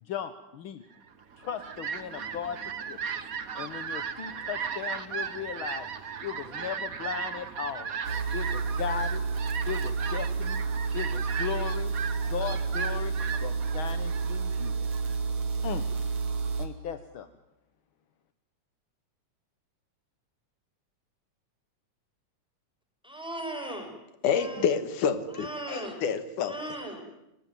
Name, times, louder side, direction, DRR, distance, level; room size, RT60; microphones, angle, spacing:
voice 1, 0.0-0.8 1.4-2.6 2.9-3.0 3.5-5.9 6.2-8.0 8.3-9.2 9.7-10.6 10.9-11.9 12.3-13.1 13.4-14.8 15.6-15.9 16.6-17.3, left 9 dB, 60° left, 10 dB, 1.4 m, -37 dB
Fowl, 1.2-15.2, right 6 dB, 80° right, 0.7 m, -37 dB
sound 1, 8.0-16.7, right 4 dB, 60° right, 3.5 m, -30 dB
voice 2, 23.0-23.9 24.2-24.6 25.3-26.0 26.4-27.0, right 1 dB, ahead, 3 dB, 5.8 m, -37 dB
voice 3, 24.2-26.6, left 7 dB, 85° left, 11 dB, 3.0 m, -28 dB
30.0 x 19.5 x 9.4 m, 0.90 s
omnidirectional pair, 3.6 m